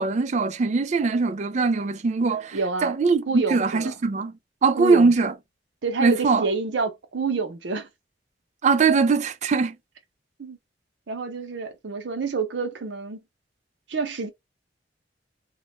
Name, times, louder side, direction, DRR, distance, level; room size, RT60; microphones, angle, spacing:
voice 1, 0.0-4.3 4.6-5.3 6.0-6.5 8.6-9.8, right 4 dB, 40° right, 0.4 m, -21 dB
voice 2, 2.5-2.9 3.3-3.9 4.8-5.1 5.8-7.9 10.4-10.6 11.1-13.2 13.9-14.3, right 4 dB, 80° right, 0.7 m, -28 dB
2.2 x 2.2 x 2.8 m
head